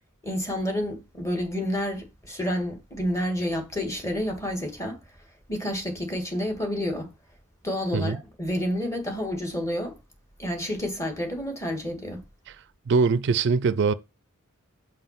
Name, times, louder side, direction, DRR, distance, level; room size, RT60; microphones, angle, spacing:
voice 1, 0.2-5.0 5.5-7.1 7.6-10.0 10.4-12.2, equal, 15° left, 1.6 m, -29 dB
voice 2, 12.9-13.9, right 4 dB, 55° right, 0.4 m, -22 dB
5.6 x 4.7 x 5.8 m
head